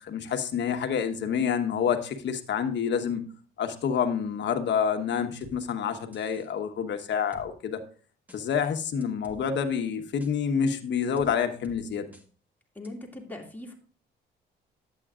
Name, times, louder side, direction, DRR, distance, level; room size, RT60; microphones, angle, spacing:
voice 1, 0.0-3.2 3.6-7.8 8.3-12.1, left 7 dB, 65° left, 6 dB, 1.2 m, -28 dB
sound 1, 5.4-5.6 6.1-6.5 7.3-7.5 8.3-8.4 9.0-9.4 10.2-10.3 11.2-11.3 11.6-11.8 12.1-12.3 12.8-12.9, right 1 dB, 10° right, 1.5 m, -49 dB
voice 2, 12.7-13.7, left 1 dB, 10° left, 0 dB, 2.3 m, -40 dB
11.0 x 8.4 x 2.4 m, 0.41 s
cardioid pair, 90°, 20 cm